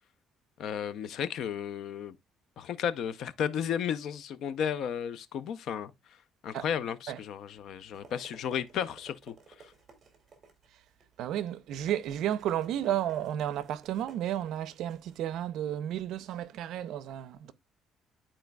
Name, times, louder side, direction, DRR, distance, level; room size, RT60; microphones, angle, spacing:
voice 1, 0.6-2.1 2.6-5.9 6.4-9.7, left 8 dB, 60° left, 0.5 m, -34 dB
sound 1, 7.6-16.4, right 4 dB, 30° right, 2.1 m, -57 dB
voice 2, 11.2-17.5, right 11 dB, 70° right, 0.6 m, -32 dB
11.5 x 4.4 x 2.2 m
cardioid pair, 160°, 0 cm